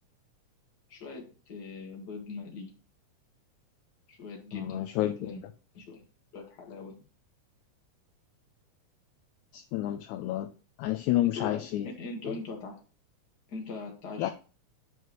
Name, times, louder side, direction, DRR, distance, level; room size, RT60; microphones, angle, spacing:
voice 1, 0.9-2.7 4.1-5.4 5.7-6.0 6.3-7.0 11.3-12.8 13.5-14.3, left 3 dB, 40° left, 0 dB, 2.0 m, -41 dB
voice 2, 4.5-5.4 9.5-10.5 10.8-11.9 14.2-14.3, left 14 dB, 80° left, 7 dB, 1.8 m, -30 dB
9.8 x 4.6 x 3.1 m, 0.36 s
omnidirectional pair, 3.7 m